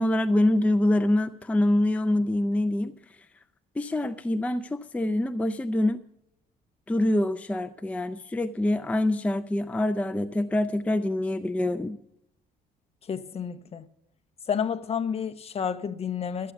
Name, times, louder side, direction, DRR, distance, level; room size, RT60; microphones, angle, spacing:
voice 1, 0.0-2.9 3.8-6.0 6.9-12.0, left 1 dB, 10° left, 0.5 m, -25 dB
voice 2, 13.1-13.9 14.5-16.5, left 7 dB, 35° left, 0.8 m, -30 dB
13.0 x 8.5 x 6.9 m
cardioid pair, 110°, 17 cm